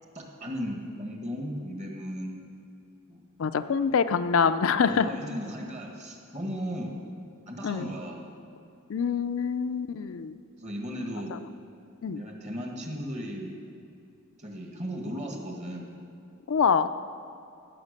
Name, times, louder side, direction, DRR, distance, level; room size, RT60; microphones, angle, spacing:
voice 1, 0.1-2.4 3.1-3.2 4.8-7.0 7.5-8.3 10.6-11.3 12.1-13.5 14.4-15.9, equal, 30° right, 1 dB, 1.5 m, -36 dB
voice 2, 3.4-5.1 7.6-7.9 8.9-10.4 11.3-11.4 12.0-12.2 16.5-16.9, left 6 dB, 65° left, 10 dB, 0.4 m, -25 dB
16.5 x 5.9 x 6.5 m, 2.7 s
head